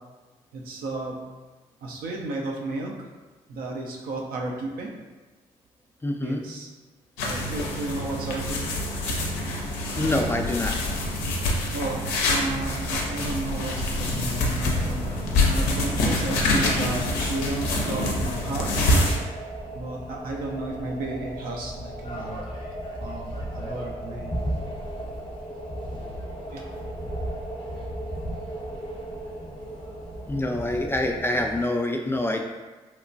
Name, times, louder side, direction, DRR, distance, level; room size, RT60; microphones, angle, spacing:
voice 1, 0.5-1.2 1.8-2.9 3.5-4.9 6.2-6.7 7.2-8.7 11.7-15.0 15.4-18.7 19.7-22.4 23.0-24.4 26.5-26.6, right 2 dB, 70° right, -1 dB, 0.5 m, -33 dB
voice 2, 6.0-6.4 10.0-10.7 30.3-32.5, left 1 dB, 15° left, 2 dB, 0.3 m, -26 dB
sound 1, 7.2-19.2, left 1 dB, 85° left, 0.4 m, -26 dB
sound 2, 12.3-31.6, right 1 dB, 30° left, 0.7 m, -35 dB
2.9 x 2.1 x 2.6 m, 1.2 s
hypercardioid pair, 45°, 16 cm